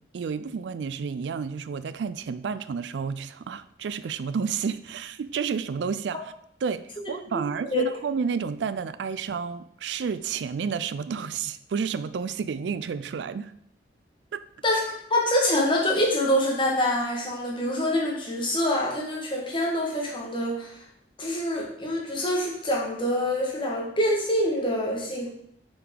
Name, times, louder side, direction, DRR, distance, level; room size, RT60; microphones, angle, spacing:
voice 1, 0.1-6.2 6.6-13.5 14.3-14.4, right 6 dB, 90° right, 14 dB, 0.4 m, -30 dB
voice 2, 14.6-20.8 21.2-25.3, left 1 dB, 30° left, -2 dB, 1.6 m, -25 dB
6.5 x 4.8 x 3.8 m, 0.69 s
head